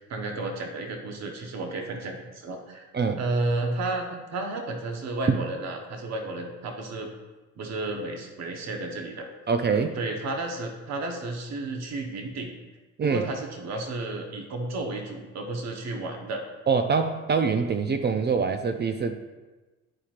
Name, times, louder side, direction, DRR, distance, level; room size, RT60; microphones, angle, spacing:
voice 1, 0.0-2.9 3.2-7.1 7.6-9.3 9.9-12.5 13.0-16.4, right 2 dB, 60° right, 3 dB, 1.0 m, -32 dB
voice 2, 9.5-10.0 13.0-13.3 16.7-19.3, right 5 dB, 35° right, 7 dB, 0.4 m, -24 dB
11.0 x 4.3 x 2.5 m, 1.2 s
cardioid pair, 90°, 30 cm